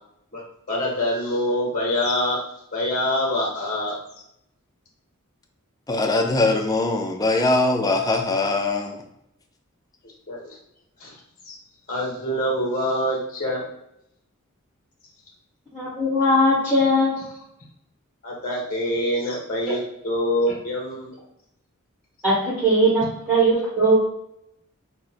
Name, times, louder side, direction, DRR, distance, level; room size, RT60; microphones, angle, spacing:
voice 1, 0.7-2.4 2.7-4.0 10.3-10.6 11.0-11.2 11.4-11.6 11.9-13.6 18.2-19.8 20.0-21.1, left 1 dB, 40° left, -2 dB, 0.9 m, -25 dB
voice 2, 5.9-9.0, left 2 dB, 15° left, 3 dB, 0.4 m, -21 dB
voice 3, 15.7-17.1 22.2-23.9, right 1 dB, 10° right, -11 dB, 1.3 m, -19 dB
5.9 x 2.1 x 2.7 m, 0.79 s
head